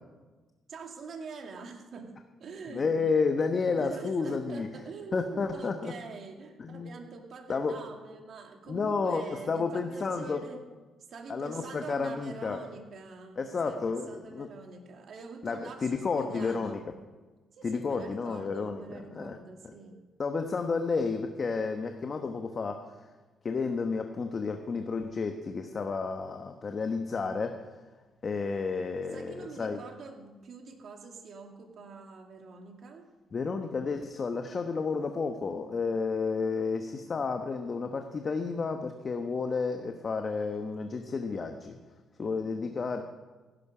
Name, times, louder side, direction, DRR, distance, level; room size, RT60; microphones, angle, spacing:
voice 1, 0.7-2.9 3.7-10.7 11.1-16.9 17.5-20.0 29.1-33.1 42.2-42.8, right 4 dB, 60° right, 3 dB, 2.3 m, -45 dB
voice 2, 2.7-4.7 5.1-5.9 6.6-7.0 7.5-7.8 8.7-10.4 11.3-12.6 13.4-14.5 15.4-16.8 17.6-19.4 19.6-19.7 20.2-23.1 23.4-27.7 28.2-29.8 33.3-41.8 42.2-43.0, left 4 dB, 40° left, 5 dB, 1.1 m, -31 dB
16.0 x 11.5 x 5.0 m, 1.3 s
cardioid pair, 90°, 0 cm